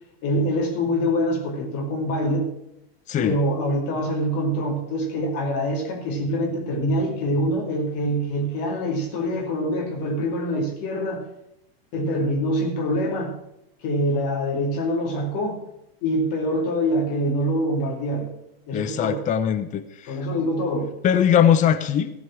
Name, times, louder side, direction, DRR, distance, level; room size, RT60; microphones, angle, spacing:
voice 1, 0.2-2.5 3.2-11.2 11.9-13.4 13.8-15.6 16.0-18.3 18.7-19.2 20.1-20.9, equal, 50° left, 1 dB, 2.6 m, -25 dB
voice 2, 18.7-20.2 21.0-22.1, left 9 dB, 25° left, 12 dB, 0.7 m, -21 dB
15.0 x 5.2 x 7.5 m, 0.85 s
hypercardioid pair, 120°, 31 cm